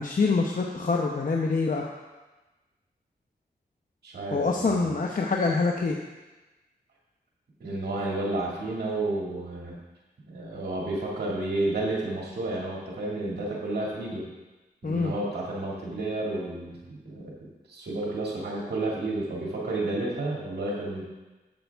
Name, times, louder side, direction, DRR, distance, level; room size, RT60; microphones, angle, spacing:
voice 1, 0.0-1.9 4.3-6.0 14.8-15.1, left 4 dB, 55° left, 0 dB, 0.9 m, -25 dB
voice 2, 4.0-4.9 7.6-9.8 10.3-14.3 14.8-21.0, right 2 dB, 80° right, -4 dB, 2.2 m, -31 dB
10.5 x 7.9 x 3.5 m, 1.2 s
cardioid pair, 55°, 17 cm